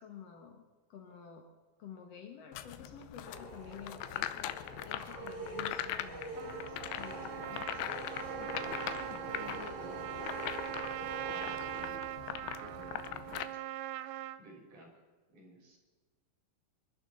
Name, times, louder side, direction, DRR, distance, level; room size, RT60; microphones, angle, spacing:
voice 1, 0.0-1.4 1.8-7.7, left 7 dB, 70° left, 3 dB, 1.5 m, -51 dB
sound 1, 2.5-13.4, left 12 dB, 85° left, 3.0 m, -41 dB
sound 2, 3.2-12.3, right 2 dB, 25° right, 5.6 m, -45 dB
Trumpet, 6.4-14.4, right 14 dB, 90° right, 2.9 m, -41 dB
voice 2, 7.2-10.4 11.0-12.1 12.4-13.6 14.4-15.0 15.3-15.8, right 1 dB, 50° right, 0 dB, 4.7 m, -54 dB
25.5 x 12.0 x 4.1 m, 1.3 s
omnidirectional pair, 5.1 m